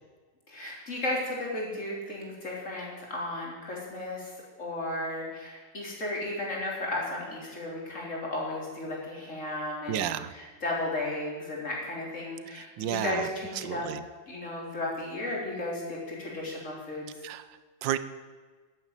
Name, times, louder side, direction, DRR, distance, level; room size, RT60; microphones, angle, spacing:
voice 1, 0.5-13.9 14.3-17.2, left 2 dB, 40° left, -3 dB, 4.3 m, -34 dB
voice 2, 9.9-10.3 12.5-13.3 13.6-14.0 17.2-18.0, right 11 dB, 80° right, 14 dB, 1.5 m, -32 dB
11.5 x 10.0 x 9.0 m, 1.4 s
omnidirectional pair, 2.0 m